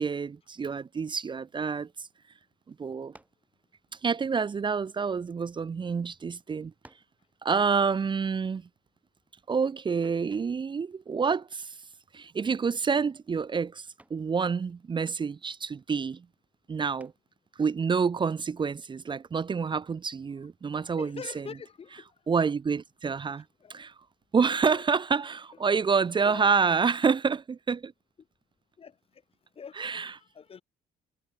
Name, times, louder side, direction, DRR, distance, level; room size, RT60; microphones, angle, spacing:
voice 1, 0.0-1.9 2.7-3.1 4.0-6.7 7.4-8.6 9.5-11.8 12.1-16.2 16.7-17.1 17.6-21.5 22.3-23.4 23.7-23.9 24.3-27.9 29.8-30.1, right 5 dB, 30° right, 0.9 m, -28 dB
sound 1, 3.1-3.5 4.4-5.6 6.3-6.4 6.8-7.2 10.0-10.4 12.3-12.7 13.0-13.4 14.0-14.3 17.0-17.4, right 1 dB, 10° right, 4.3 m, -58 dB
voice 2, 20.8-22.1 23.6-23.8 24.5-24.8 26.2-26.5 28.8-29.0 29.5-30.6, left 6 dB, 35° left, 1.5 m, -44 dB
cardioid pair, 110°, 17 cm